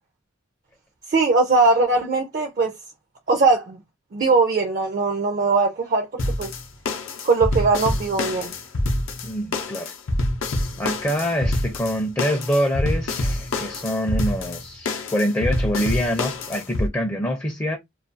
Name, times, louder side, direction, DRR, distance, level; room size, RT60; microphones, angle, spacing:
voice 1, 1.1-2.7 3.3-3.8 4.1-6.5 7.2-8.5, right 3 dB, 45° right, 0.4 m, -20 dB
sound 1, 6.2-16.9, left 2 dB, 85° left, 0.5 m, -26 dB
voice 2, 9.2-9.9 10.8-17.8, equal, 15° left, 0.4 m, -25 dB
2.4 x 2.3 x 2.5 m
head